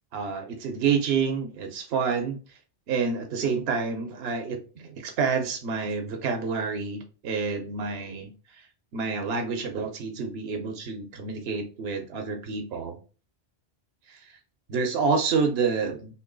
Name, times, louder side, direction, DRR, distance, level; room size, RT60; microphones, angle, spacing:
voice 1, 0.1-2.4 2.9-8.6 8.9-13.0 14.1-14.4 14.7-16.2, right 5 dB, 70° right, 5 dB, 1.0 m, -28 dB
3.0 x 3.0 x 3.8 m, 0.36 s
omnidirectional pair, 1.1 m